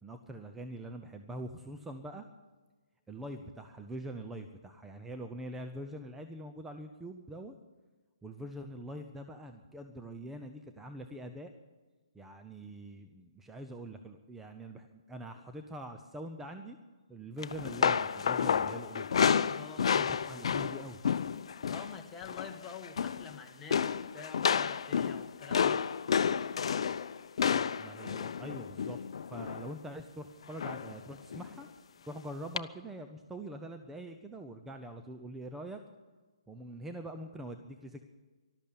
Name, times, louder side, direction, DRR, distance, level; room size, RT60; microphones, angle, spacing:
voice 1, 0.0-2.2 3.1-7.5 8.2-11.5 12.1-16.8 17.1-19.2 19.9-21.0 27.5-29.0 29.3-31.7 32.1-35.8 36.5-38.0, right 1 dB, 5° right, 5 dB, 0.7 m, -44 dB
sound 1, 17.4-22.0 22.2-22.6 22.8-23.3 23.7-29.7 30.6-31.0 31.3-31.5 32.6-32.7, left 7 dB, 60° left, 0.6 m, -30 dB
voice 2, 19.4-20.0 21.7-25.8, left 6 dB, 10° left, 1 dB, 1.5 m, -47 dB
13.5 x 12.5 x 8.6 m, 1.3 s
hypercardioid pair, 145°, 3 cm